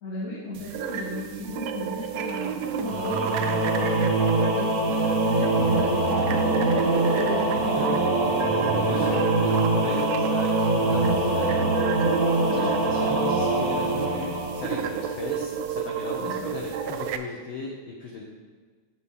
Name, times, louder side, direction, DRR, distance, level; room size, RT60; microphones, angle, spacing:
voice 1, 0.0-4.0 4.5-8.0 12.4-12.7 16.2-16.4, left 2 dB, 60° left, -10 dB, 3.2 m, -36 dB
sound 1, 0.5-17.2, right 8 dB, 85° right, 1.4 m, -32 dB
Singing / Musical instrument, 2.8-15.3, right 2 dB, 50° right, 1.0 m, -24 dB
voice 2, 8.7-11.7 12.4-18.2, left 3 dB, 85° left, -1 dB, 1.1 m, -37 dB
7.5 x 4.4 x 7.0 m, 1.5 s
omnidirectional pair, 3.4 m